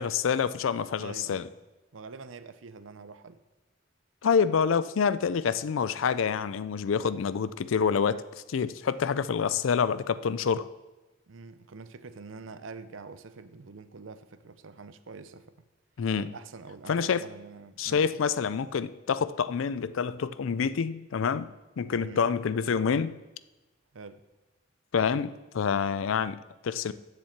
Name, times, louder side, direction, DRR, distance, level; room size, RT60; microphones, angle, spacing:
voice 1, 0.0-1.5 4.2-10.7 16.0-16.3 16.9-17.3 17.8-21.5 21.8-23.2 24.9-26.9, left 6 dB, 85° left, 0.4 m, -27 dB
voice 2, 1.0-1.5 1.9-3.4 11.3-15.6 16.2-18.0 22.0-22.2 23.9-24.2, right 4 dB, 80° right, 0.6 m, -45 dB
7.4 x 7.4 x 7.3 m
head